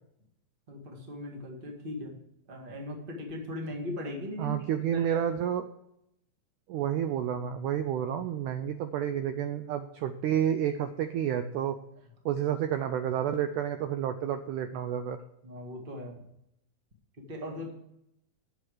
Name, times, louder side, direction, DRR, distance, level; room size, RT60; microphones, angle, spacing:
voice 1, 0.7-2.2 2.5-4.5 4.9-5.2 15.4-16.2 17.2-17.7, left 1 dB, 30° right, 1 dB, 1.0 m, -39 dB
voice 2, 4.4-5.6 6.7-11.8 12.3-15.2, right 9 dB, 80° right, 9 dB, 1.8 m, -30 dB
9.9 x 6.5 x 6.3 m, 0.78 s
omnidirectional pair, 4.1 m